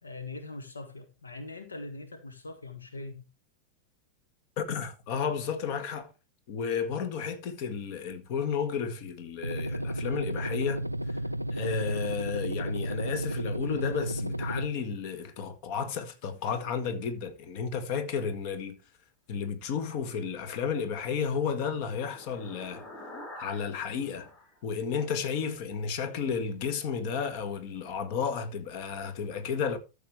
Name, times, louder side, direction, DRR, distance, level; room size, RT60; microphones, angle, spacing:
voice 1, 0.0-3.2, left 2 dB, 75° left, 1.4 m, -42 dB
voice 2, 4.6-6.1 6.5-11.2 11.5-18.8 19.3-22.9 23.4-24.3 24.6-29.8, left 6 dB, 45° left, 1.8 m, -32 dB
sound 1, 9.4-14.7, equal, 85° right, 0.4 m, -33 dB
sound 2, 21.0-25.4, left 1 dB, 30° left, 5.6 m, -49 dB
14.0 x 7.1 x 3.1 m
figure-of-eight pair, 90°, 0 cm